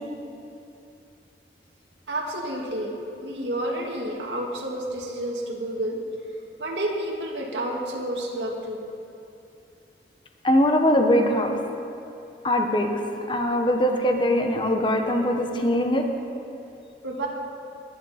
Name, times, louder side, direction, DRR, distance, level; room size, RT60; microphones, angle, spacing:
voice 1, 2.1-6.0 6.6-8.8 17.0-17.3, right 1 dB, 80° right, -1 dB, 2.0 m, -30 dB
voice 2, 10.4-11.6 12.4-12.9 13.3-16.1, left 1 dB, 25° left, 4 dB, 1.1 m, -21 dB
20.0 x 10.0 x 4.3 m, 2.8 s
head